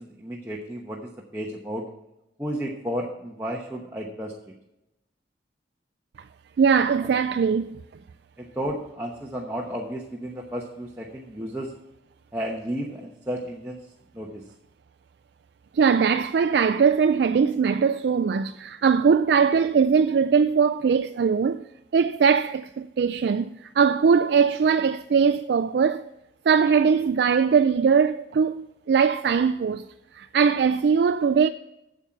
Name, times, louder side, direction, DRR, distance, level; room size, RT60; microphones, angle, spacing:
voice 1, 0.0-1.8 2.4-4.3 7.0-7.1 8.4-11.7 12.3-13.8 14.1-14.4, equal, 15° right, 1.0 m, -33 dB
voice 2, 6.6-7.8 15.7-21.7 21.9-26.1 26.5-29.8 30.1-31.5, right 6 dB, 70° right, 0.3 m, -21 dB
9.0 x 7.4 x 5.8 m
head